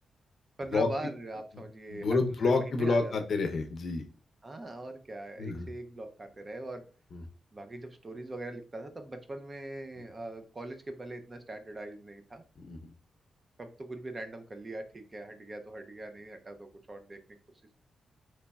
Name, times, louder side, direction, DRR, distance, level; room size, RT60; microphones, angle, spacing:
voice 1, 0.6-3.3 4.4-6.8 7.5-12.4 13.6-17.2, right 2 dB, 25° right, 6 dB, 0.5 m, -41 dB
voice 2, 1.9-4.0 5.4-5.7 7.1-7.2 12.6-12.9, left 3 dB, 60° left, 5 dB, 0.6 m, -29 dB
4.0 x 3.0 x 2.2 m, 0.38 s
wide cardioid pair, 120°, 0 cm